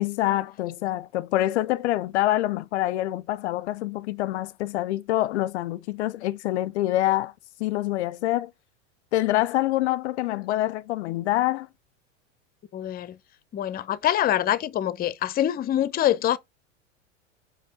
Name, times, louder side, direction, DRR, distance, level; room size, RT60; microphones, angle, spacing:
voice 1, 0.0-7.3 7.6-8.5 9.1-11.7, left 15 dB, 65° left, 0.5 m, -26 dB
voice 2, 12.7-13.2 13.5-16.4, left 12 dB, 25° left, 0.6 m, -25 dB
5.3 x 5.2 x 3.9 m
hypercardioid pair, 90°, 37 cm